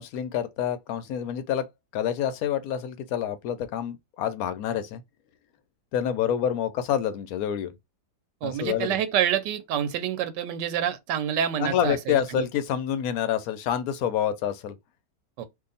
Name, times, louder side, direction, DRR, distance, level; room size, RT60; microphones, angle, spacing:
voice 1, 0.0-1.7 1.9-5.0 5.9-7.7 8.4-9.0 11.6-14.7, left 9 dB, 70° left, 1.0 m, -27 dB
voice 2, 8.4-12.4 15.4-15.5, right 9 dB, 90° right, 1.3 m, -27 dB
2.7 x 2.5 x 3.9 m
omnidirectional pair, 1.8 m